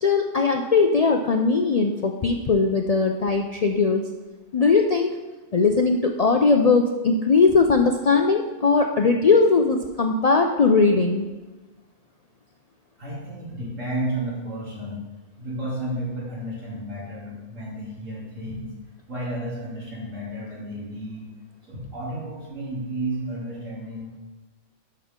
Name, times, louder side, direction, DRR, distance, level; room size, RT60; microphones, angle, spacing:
voice 1, 0.0-4.0 4.5-5.1 5.5-11.3, left 4 dB, 60° left, 3 dB, 0.4 m, -19 dB
voice 2, 13.0-15.0 15.4-18.7 19.1-21.3 21.7-24.2, right 1 dB, 90° right, -6 dB, 3.3 m, -32 dB
12.5 x 5.4 x 3.7 m, 1.2 s
omnidirectional pair, 1.3 m